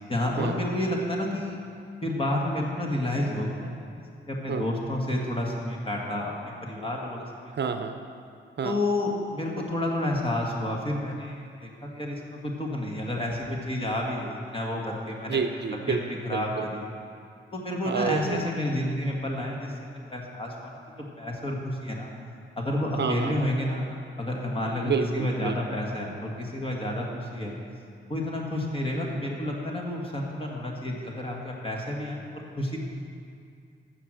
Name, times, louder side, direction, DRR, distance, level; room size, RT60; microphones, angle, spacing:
voice 1, 0.1-1.6 2.0-7.2 8.6-15.4 15.9-16.8 17.5-22.1 22.6-23.9 24.2-27.6 28.1-32.8, left 1 dB, 25° left, -1 dB, 1.8 m, -30 dB
voice 2, 7.5-8.0 8.6-8.8 15.3-16.0 16.3-16.4 17.9-18.4 23.0-23.5 24.8-25.5, right 6 dB, 60° right, 7 dB, 0.6 m, -28 dB
15.0 x 6.0 x 6.3 m, 2.4 s
wide cardioid pair, 145°, 20 cm